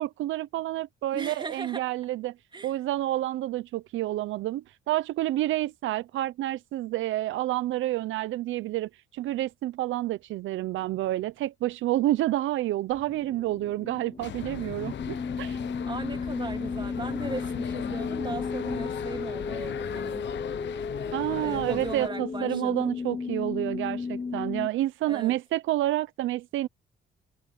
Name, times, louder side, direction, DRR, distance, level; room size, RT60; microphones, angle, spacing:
voice 1, 0.0-2.3 2.6-15.6 21.1-26.7, right 15 dB, 80° right, 0.6 m, -29 dB
voice 2, 1.1-1.8 2.5-2.7 15.9-20.2 21.4-22.9 25.1-25.4, right 3 dB, 25° right, 2.8 m, -37 dB
sound 1, 12.9-24.7, left 4 dB, 25° left, 0.8 m, -34 dB
sound 2, 14.2-22.1, left 11 dB, 65° left, 1.1 m, -38 dB
sound 3, 15.9-18.8, right 5 dB, 40° right, 6.1 m, -54 dB
cardioid pair, 90°, 20 cm